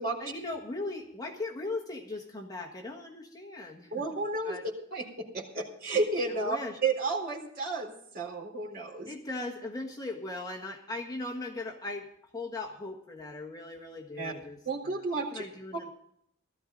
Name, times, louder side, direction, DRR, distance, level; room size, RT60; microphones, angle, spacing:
voice 1, 0.2-4.0 4.4-4.6 6.3-6.8 9.1-12.1 12.3-14.6 14.8-15.9, left 2 dB, 20° left, 1 dB, 1.5 m, -38 dB
voice 2, 3.9-4.6 4.9-6.6 6.8-9.1 14.2-14.3 14.7-15.4, right 3 dB, 45° right, -1 dB, 3.9 m, -32 dB
16.5 x 13.5 x 3.8 m, 0.71 s
head